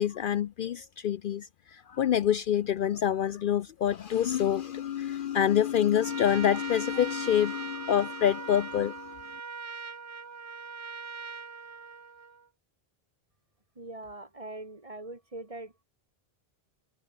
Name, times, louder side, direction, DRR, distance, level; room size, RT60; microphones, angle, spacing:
voice 1, 0.0-9.3, left 10 dB, 60° left, 0.7 m, -27 dB
Trumpet, 5.9-12.5, right 5 dB, 70° right, 1.7 m, -41 dB
voice 2, 13.8-15.8, right 2 dB, 35° right, 2.3 m, -42 dB
omnidirectional pair, 1.0 m